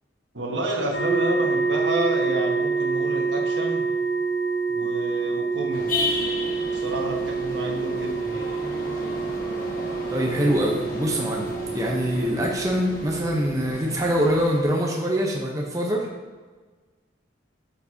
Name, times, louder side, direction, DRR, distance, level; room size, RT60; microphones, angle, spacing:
voice 1, 0.3-3.9 4.7-5.9 6.7-8.5, right 1 dB, 75° right, 0 dB, 1.4 m, -29 dB
sound 1, 0.9-13.4, right 4 dB, 90° left, 2.5 m, -27 dB
sound 2, 5.7-14.6, left 2 dB, 45° left, 1.4 m, -34 dB
voice 2, 10.1-16.1, equal, 20° right, -1 dB, 0.8 m, -24 dB
9.4 x 6.9 x 2.8 m, 1.3 s
head